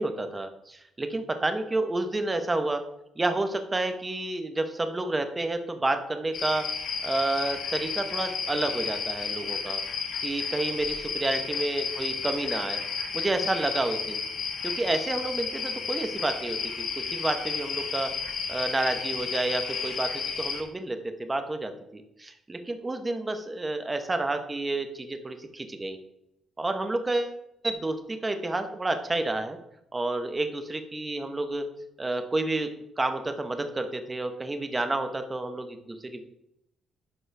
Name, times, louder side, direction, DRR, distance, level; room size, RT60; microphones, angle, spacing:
voice 1, 0.0-2.8 3.2-6.6 7.0-9.8 10.2-12.8 13.1-14.2 14.6-18.1 18.5-26.0 26.6-27.4 27.6-29.6 29.9-31.6 32.0-32.7 33.0-36.2, right 2 dB, 20° right, 7 dB, 1.0 m, -30 dB
sound 1, 6.3-20.6, left 5 dB, 65° left, 1.4 m, -32 dB
11.5 x 4.3 x 3.4 m, 0.81 s
cardioid pair, 90°, 0 cm